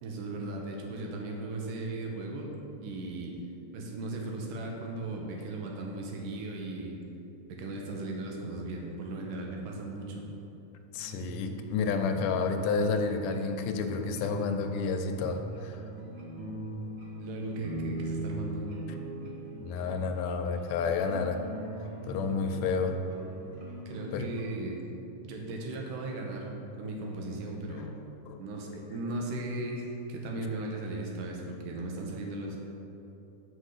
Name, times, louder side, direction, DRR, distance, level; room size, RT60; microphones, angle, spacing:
voice 1, 0.0-2.5 2.8-3.4 3.7-7.0 7.5-10.2 17.2-18.6 23.9-24.8 25.2-26.5 26.8-27.9 28.4-32.6, right 2 dB, 85° right, 0 dB, 2.6 m, -37 dB
voice 2, 10.9-15.8 19.6-21.4 22.0-23.0 24.1-24.3 28.3-28.4, left 5 dB, 85° left, 6 dB, 2.1 m, -30 dB
sound 1, 11.0-24.4, right 2 dB, 60° right, 1.7 m, -40 dB
5.9 x 5.4 x 6.5 m, 2.9 s
omnidirectional pair, 3.7 m